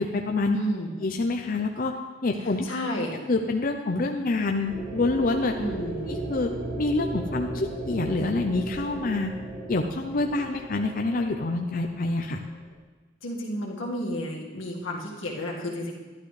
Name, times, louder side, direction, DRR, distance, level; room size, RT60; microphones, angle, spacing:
voice 1, 0.0-0.6 1.0-1.9 2.2-2.7 3.3-5.5 6.1-9.3 9.7-12.4, left 2 dB, 45° left, 3 dB, 0.6 m, -26 dB
voice 2, 0.5-0.9 2.6-3.2 5.5-6.1 13.2-15.9, equal, 90° left, -3 dB, 1.9 m, -31 dB
sound 1, 4.7-12.8, right 1 dB, 60° right, 2.3 m, -36 dB
12.0 x 11.5 x 3.3 m, 1.4 s
head